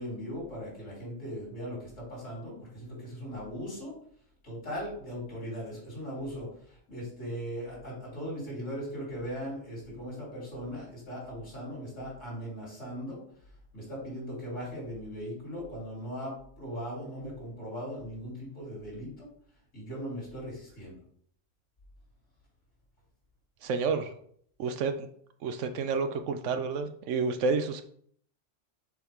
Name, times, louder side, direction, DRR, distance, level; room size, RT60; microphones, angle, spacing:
voice 1, 0.0-3.9 4.4-13.2 13.7-19.3 19.7-21.0, equal, 80° left, -5 dB, 3.4 m, -39 dB
voice 2, 23.6-24.1 24.6-25.1 25.4-27.8, right 4 dB, 80° right, 8 dB, 0.9 m, -30 dB
6.3 x 4.5 x 3.5 m, 0.62 s
omnidirectional pair, 1.3 m